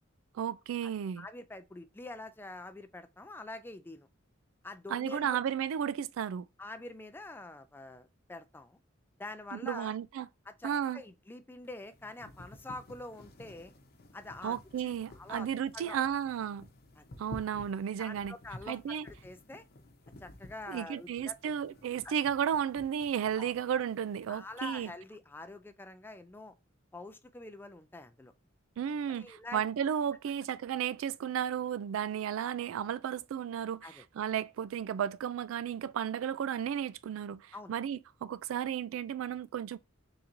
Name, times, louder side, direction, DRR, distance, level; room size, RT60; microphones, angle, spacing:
voice 1, 0.3-1.3 4.9-6.5 9.5-10.3 10.6-11.0 14.4-16.7 17.2-18.4 18.7-19.1 20.7-24.9 28.8-39.8, right 8 dB, 85° right, 0.3 m, -33 dB
voice 2, 1.2-4.1 4.6-5.4 6.6-8.8 9.2-9.9 10.5-13.7 14.1-15.5 15.7-16.0 17.0-17.1 18.0-19.6 20.2-21.5 22.0-22.1 23.3-23.5 24.3-26.5 26.9-28.3 29.1-29.6 33.8-34.0 37.5-37.7, left 2 dB, 10° left, 0.3 m, -46 dB
sound 1, 11.6-24.9, left 1 dB, 50° left, 0.8 m, -53 dB
4.3 x 3.9 x 2.5 m
head